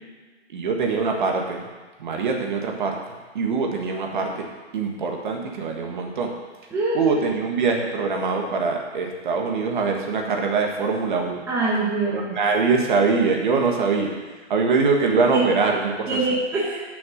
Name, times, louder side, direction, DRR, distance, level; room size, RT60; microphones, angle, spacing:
voice 1, 0.5-1.6 2.0-3.0 3.3-4.5 4.7-6.3 6.9-11.4 12.1-14.1 14.5-16.2, right 4 dB, 45° right, 2 dB, 1.6 m, -23 dB
voice 2, 6.7-7.2 11.5-12.4 15.3-15.4 16.1-16.8, right 3 dB, 5° right, -7 dB, 1.2 m, -24 dB
10.5 x 6.3 x 6.5 m, 1.3 s
hypercardioid pair, 165°, 35 cm